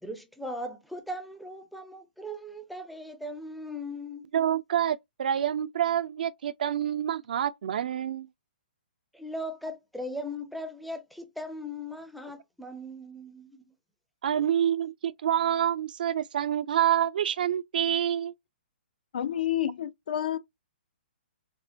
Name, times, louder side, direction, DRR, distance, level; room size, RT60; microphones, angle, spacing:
voice 1, 0.0-4.3 9.1-13.7 14.4-14.5, left 1 dB, ahead, 0.5 m, -38 dB
voice 2, 4.3-8.3 14.2-18.3, right 10 dB, 60° right, 0.3 m, -27 dB
voice 3, 19.1-20.4, left 11 dB, 60° left, 0.4 m, -29 dB
3.5 x 2.1 x 2.5 m
figure-of-eight pair, 125°, 5 cm